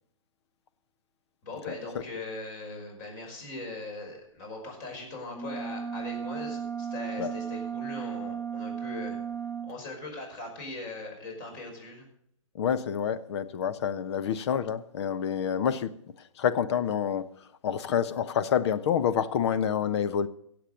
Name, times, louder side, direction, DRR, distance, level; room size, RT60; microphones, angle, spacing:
voice 1, 1.4-9.2 9.6-12.1, left 2 dB, 40° left, 5.6 m, -40 dB
sound 1, 5.3-9.8, right 7 dB, 5° left, 0.9 m, -35 dB
voice 2, 12.5-15.9 16.4-17.3 17.6-20.3, left 8 dB, 55° left, 0.9 m, -27 dB
16.0 x 7.9 x 6.5 m
hypercardioid pair, 130°, 17 cm